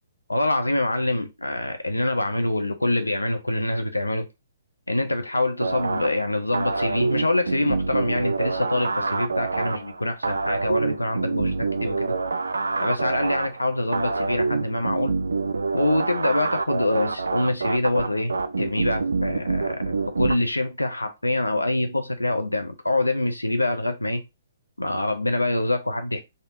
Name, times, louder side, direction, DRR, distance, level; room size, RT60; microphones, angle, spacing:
voice 1, 0.3-4.3 4.9-12.1 12.8-15.1 15.7-24.2 24.8-26.2, left 2 dB, 85° left, 0.5 m, -25 dB
sound 1, 5.6-20.3, right 4 dB, 70° right, 0.3 m, -27 dB
3.4 x 2.7 x 2.5 m
figure-of-eight pair, 125°, 0 cm